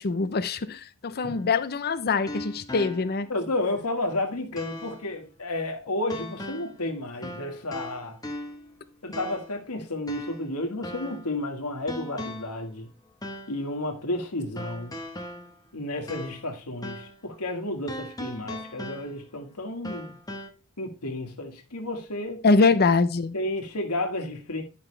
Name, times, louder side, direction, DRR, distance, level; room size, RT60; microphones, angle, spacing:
voice 1, 0.0-3.3 22.4-23.3, left 4 dB, 45° left, 0.6 m, -23 dB
sound 1, 1.3-3.4 3.8-3.9 4.6-5.1 6.1-6.8 7.2-8.7 9.1-9.6 10.1-11.4 11.9-12.6 13.2-13.6 14.6-16.6 16.8-17.2 17.9-19.4 19.8-20.5, left 1 dB, 15° left, 1.1 m, -39 dB
voice 2, 3.3-8.2 9.0-12.9 13.5-15.0 15.7-20.2 20.8-22.4 23.3-24.6, left 1 dB, 80° left, 1.7 m, -32 dB
10.5 x 5.9 x 3.3 m
head